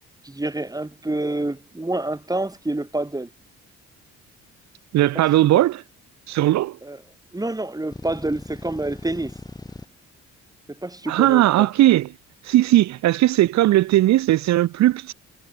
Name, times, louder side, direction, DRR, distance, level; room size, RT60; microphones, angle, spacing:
voice 1, 0.2-3.3 5.1-5.2 5.5-5.7 6.8-7.0 7.3-9.4 10.8-11.7, right 2 dB, 10° right, 3.5 m, -28 dB
voice 2, 4.9-5.8 6.3-6.8 11.1-12.1 12.5-15.1, right 15 dB, 65° right, 0.6 m, -18 dB
sound 1, 7.9-9.9, left 2 dB, 15° left, 3.7 m, -39 dB
cardioid pair, 90°, 30 cm